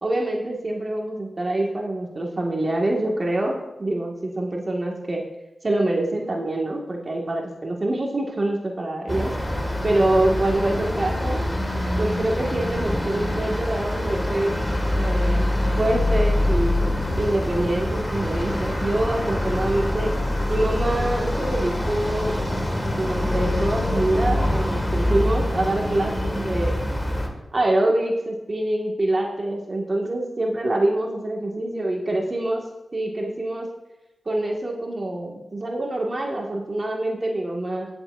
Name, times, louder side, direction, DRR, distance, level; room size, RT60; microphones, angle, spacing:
voice 1, 0.0-5.2 5.6-9.3 9.8-11.5 12.0-14.5 14.9-16.8 17.2-20.1 20.5-22.5 22.9-26.7 27.5-32.6 32.9-33.7 34.3-37.9, right 1 dB, 45° right, 0 dB, 1.8 m, -25 dB
sound 1, 9.1-27.3, left 1 dB, 20° left, 1.9 m, -25 dB
19.5 x 7.1 x 2.6 m, 0.97 s
cardioid pair, 40°, 0 cm